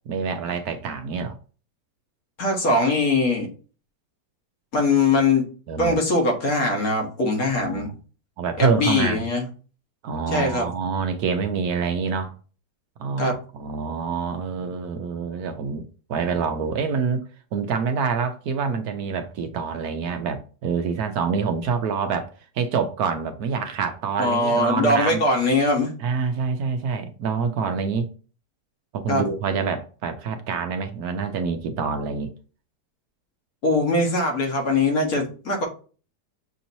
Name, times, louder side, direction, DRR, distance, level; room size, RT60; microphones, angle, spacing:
voice 1, 0.1-1.4 5.7-6.0 7.4-8.0 8.4-9.2 10.0-12.3 13.0-17.2 17.5-22.3 22.6-25.2 26.0-28.1 28.9-32.3, right 5 dB, 70° right, 1.1 m, -26 dB
voice 2, 2.4-3.5 4.7-5.5 5.8-7.9 8.6-9.5 10.3-10.7 13.2-13.4 24.2-25.9 29.1-29.2 33.6-35.7, left 2 dB, 60° left, 1.7 m, -21 dB
7.0 x 2.9 x 2.6 m
omnidirectional pair, 1.8 m